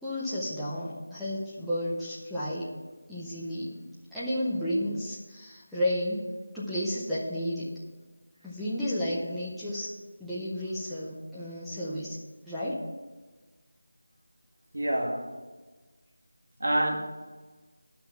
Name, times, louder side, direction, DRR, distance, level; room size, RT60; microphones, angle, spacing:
voice 1, 0.0-2.8 3.1-3.8 4.1-7.7 8.4-9.9 10.2-12.2 12.4-12.9, equal, ahead, -12 dB, 0.6 m, -32 dB
voice 2, 14.7-15.4 16.6-17.0, right 1 dB, 60° right, 1 dB, 2.1 m, -27 dB
10.5 x 5.8 x 6.9 m, 1.3 s
figure-of-eight pair, 180°, 0 cm